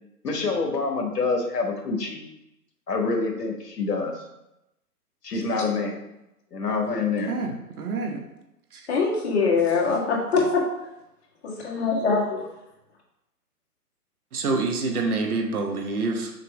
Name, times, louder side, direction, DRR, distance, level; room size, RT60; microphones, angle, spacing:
voice 1, 0.2-2.2 2.9-4.2 5.2-6.0 6.5-7.3, left 4 dB, 85° left, 3 dB, 1.4 m, -26 dB
voice 2, 6.9-8.2 8.7-8.9 14.3-16.3, right 3 dB, 65° right, 3 dB, 1.2 m, -27 dB
voice 3, 8.9-10.6 11.4-12.4, left 4 dB, 40° left, -2 dB, 1.7 m, -23 dB
6.6 x 3.0 x 5.1 m, 0.89 s
hypercardioid pair, 150°, 47 cm